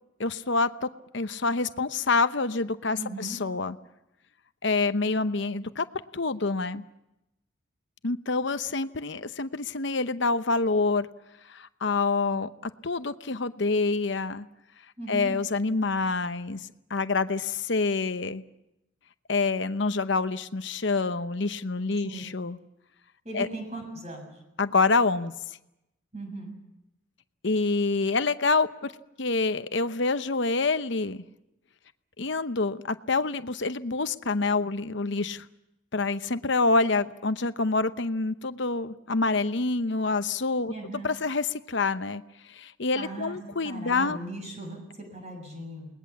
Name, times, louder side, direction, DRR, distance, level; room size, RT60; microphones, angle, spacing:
voice 1, 0.2-3.8 4.6-5.9 6.1-6.8 8.0-11.1 11.5-14.5 15.1-16.6 16.9-18.4 19.3-22.6 23.3-23.5 24.6-25.3 27.4-28.9 29.2-31.2 32.2-35.5 35.9-42.2 42.5-44.2, left 3 dB, 60° left, 11 dB, 0.9 m, -27 dB
voice 2, 3.0-3.4 15.0-15.3 22.0-22.2 23.2-24.3 26.1-26.5 40.7-41.1 42.9-43.4 43.6-45.9, right 2 dB, 30° right, 3 dB, 7.4 m, -38 dB
29.0 x 20.0 x 7.3 m, 0.90 s
head